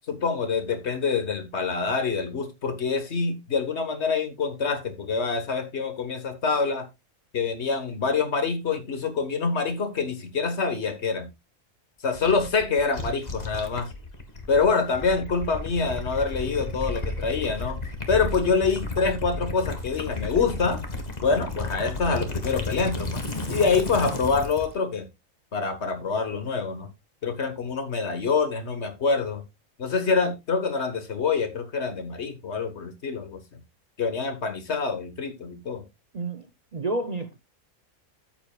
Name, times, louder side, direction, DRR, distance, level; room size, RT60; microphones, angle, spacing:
voice 1, 0.1-6.9 7.3-11.3 12.0-13.9 14.5-17.8 18.1-20.8 21.2-23.2 23.5-25.0 25.5-26.9 27.2-29.4 29.8-33.4 34.0-35.8, left 4 dB, 55° left, 1.6 m, -26 dB
Gurgling / Liquid, 12.1-24.7, left 2 dB, 30° left, 1.8 m, -33 dB
voice 2, 36.1-37.4, right 2 dB, 40° right, 0.7 m, -30 dB
13.5 x 8.1 x 2.4 m
omnidirectional pair, 1.4 m